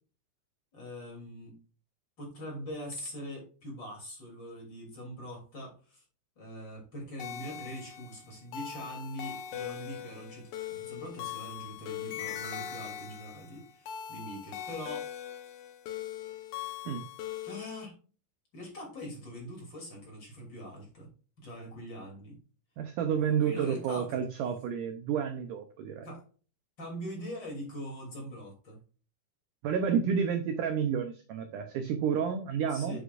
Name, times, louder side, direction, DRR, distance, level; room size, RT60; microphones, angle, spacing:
voice 1, 0.7-1.6 2.2-6.0 6.4-15.1 17.4-17.9 18.5-21.1 21.4-22.4 23.2-24.2 26.0-26.2 26.8-28.8 32.7-33.0, equal, 30° left, -1 dB, 3.2 m, -42 dB
sound 1, 7.2-17.9, left 10 dB, 85° left, 1.6 m, -41 dB
voice 2, 22.8-26.1 29.6-33.0, right 7 dB, 80° right, 7 dB, 1.8 m, -30 dB
8.2 x 8.0 x 2.5 m, 0.38 s
omnidirectional pair, 4.6 m